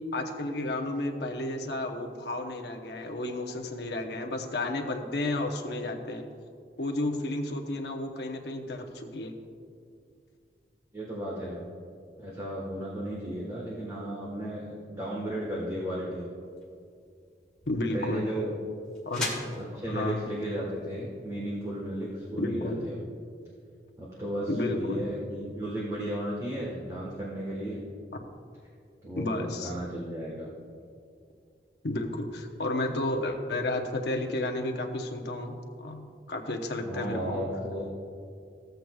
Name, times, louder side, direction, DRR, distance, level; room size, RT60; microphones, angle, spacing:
voice 1, 0.1-6.3 6.8-9.4 17.7-18.3 19.0-19.3 19.9-20.2 22.4-22.8 24.5-25.0 29.2-29.7 31.8-37.4, left 1 dB, 75° left, 3 dB, 0.8 m, -32 dB
voice 2, 10.9-11.6 12.2-16.3 17.9-18.5 19.4-23.0 24.0-27.9 29.0-30.5 36.8-37.8, equal, 20° right, -5 dB, 1.3 m, -34 dB
sound 1, 16.4-22.4, left 2 dB, 5° left, 1.8 m, -42 dB
14.5 x 7.9 x 2.3 m, 2.4 s
head